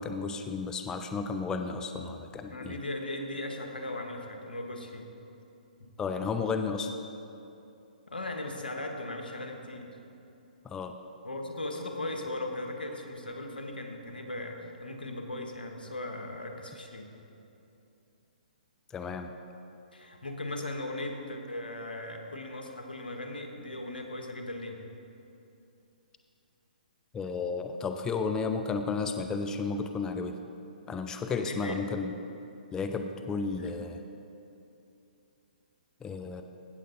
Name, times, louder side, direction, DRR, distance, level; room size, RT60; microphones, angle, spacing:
voice 1, 0.0-2.8 6.0-6.9 10.6-10.9 18.9-19.3 27.1-30.4 30.9-32.1 32.7-34.0 36.0-36.4, left 4 dB, 15° left, 6 dB, 0.4 m, -33 dB
voice 2, 2.5-5.1 5.8-5.9 8.1-10.0 11.2-17.1 19.9-24.8 31.3-31.8 33.6-33.7, left 1 dB, 90° left, 3 dB, 1.4 m, -38 dB
16.5 x 6.7 x 4.0 m, 2.8 s
hypercardioid pair, 130°, 5 cm